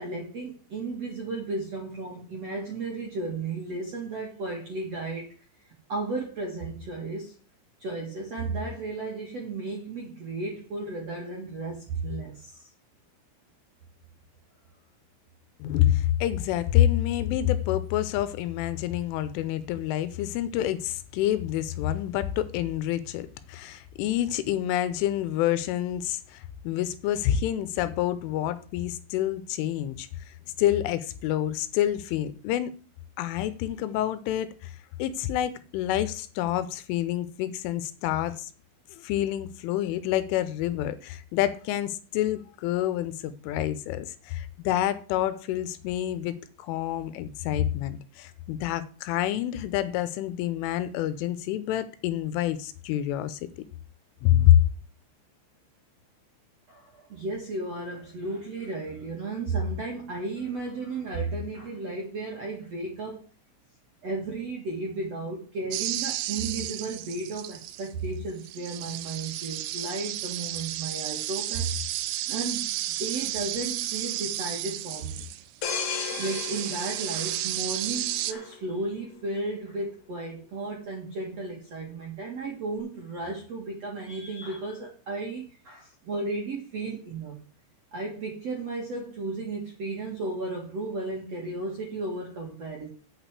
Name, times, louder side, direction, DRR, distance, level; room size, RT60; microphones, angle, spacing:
voice 1, 0.0-5.3 5.9-7.3 7.8-12.7 56.7-63.2 64.0-71.7 72.3-72.7 73.0-75.2 76.2-87.4 87.9-92.9, right 3 dB, 50° right, 1.9 m, -34 dB
voice 2, 15.6-32.8 33.2-38.5 38.9-53.4 54.2-54.6, left 12 dB, 80° left, 3.1 m, -27 dB
sound 1, 65.7-67.9 68.4-75.4 75.7-78.3, right 14 dB, 85° right, 3.3 m, -33 dB
sound 2, 75.6-78.3 78.8-79.0, left 6 dB, 55° left, 2.4 m, -34 dB
8.5 x 6.1 x 8.1 m
omnidirectional pair, 5.8 m